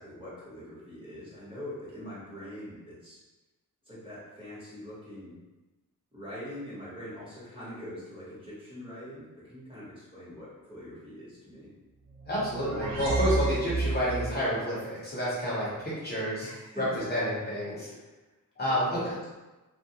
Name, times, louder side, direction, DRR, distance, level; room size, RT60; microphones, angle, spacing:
voice 1, 0.0-3.2 3.8-5.4 6.1-11.7 16.4-17.1 18.6-19.1, equal, 15° right, -10 dB, 1.1 m, -43 dB
sound 1, 12.1-14.4, right 3 dB, 80° right, 0.5 m, -31 dB
voice 2, 12.3-16.5 16.8-17.9 18.6-19.1, equal, 30° left, -9 dB, 0.7 m, -29 dB
2.3 x 2.1 x 2.8 m, 1.1 s
wide cardioid pair, 120°, 35 cm